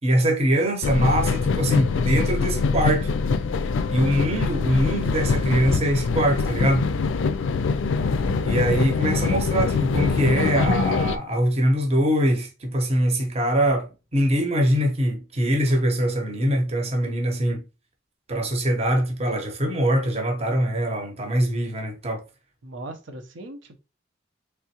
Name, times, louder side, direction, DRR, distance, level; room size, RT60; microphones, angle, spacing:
voice 1, 0.0-3.1 3.9-6.9 8.4-17.6 18.3-22.2, equal, 35° right, 0.9 m, -23 dB
sound 1, 0.8-11.2, left 4 dB, 75° left, 0.4 m, -24 dB
voice 2, 22.6-23.8, right 2 dB, 75° right, 0.7 m, -40 dB
3.6 x 3.4 x 2.8 m
head